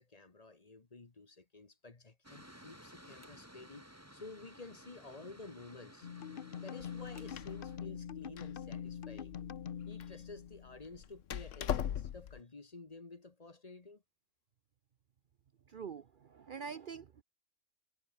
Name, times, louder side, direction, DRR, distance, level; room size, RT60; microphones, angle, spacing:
voice 1, 0.0-6.1 6.6-9.4 9.9-14.0, left 3 dB, 35° left, 1.3 m, -52 dB
Mechanical fan, 2.2-7.8, equal, 10° right, 6.0 m, -56 dB
sound 1, 6.0-10.9, left 8 dB, 50° left, 0.9 m, -44 dB
Door, 6.8-12.4, left 10 dB, 85° left, 1.2 m, -42 dB
voice 2, 15.7-17.2, right 6 dB, 50° right, 0.7 m, -45 dB
omnidirectional pair, 1.2 m